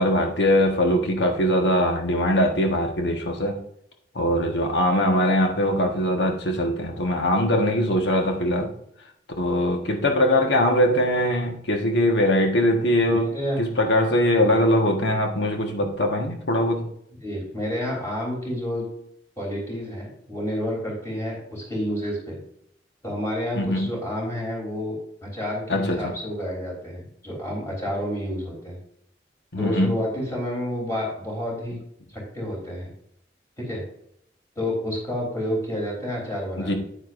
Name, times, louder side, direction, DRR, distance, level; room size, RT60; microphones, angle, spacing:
voice 1, 0.0-3.6 4.1-8.7 9.4-16.9 23.5-23.9 25.7-26.1 29.5-30.0 36.6-36.8, left 1 dB, 75° left, 3 dB, 1.4 m, -22 dB
voice 2, 13.1-13.7 17.2-18.8 19.4-22.4 23.0-25.0 25.2-28.8 29.6-31.8 32.1-32.9 33.6-33.8 34.6-36.8, equal, 15° left, -3 dB, 3.5 m, -29 dB
9.4 x 9.0 x 2.6 m, 0.72 s
head